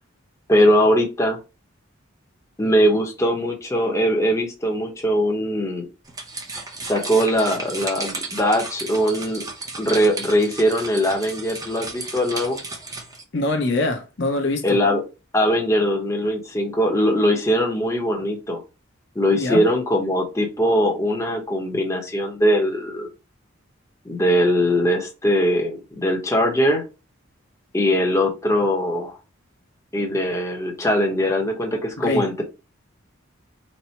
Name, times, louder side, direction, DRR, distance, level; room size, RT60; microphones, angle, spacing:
voice 1, 0.5-1.4 2.6-5.9 6.9-9.4 9.8-12.6 14.6-15.0 15.3-18.6 19.1-23.1 24.0-26.8 27.7-29.2 29.9-32.4, equal, 15° left, 0.9 m, -21 dB
sound 1, 6.1-13.2, right 3 dB, 20° right, 0.7 m, -34 dB
voice 2, 13.3-14.8 19.3-19.7 32.0-32.3, left 2 dB, 60° left, 0.8 m, -24 dB
4.2 x 2.1 x 4.4 m
head